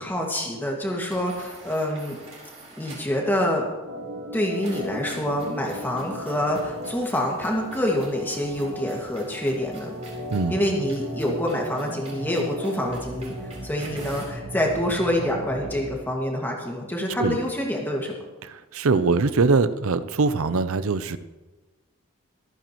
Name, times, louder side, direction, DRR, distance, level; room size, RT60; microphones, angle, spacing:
voice 1, 0.0-2.2 2.8-3.7 4.3-9.9 10.5-13.3 13.6-18.1, left 1 dB, 10° left, -1 dB, 2.0 m, -26 dB
es-printer, 1.0-3.2 4.6-14.4, right 2 dB, 30° right, 3.9 m, -47 dB
Organ, 3.8-16.0, equal, 55° right, 1.7 m, -37 dB
voice 2, 18.4-21.2, right 4 dB, 75° right, 13 dB, 0.6 m, -22 dB
25.0 x 9.1 x 3.1 m, 1.2 s
head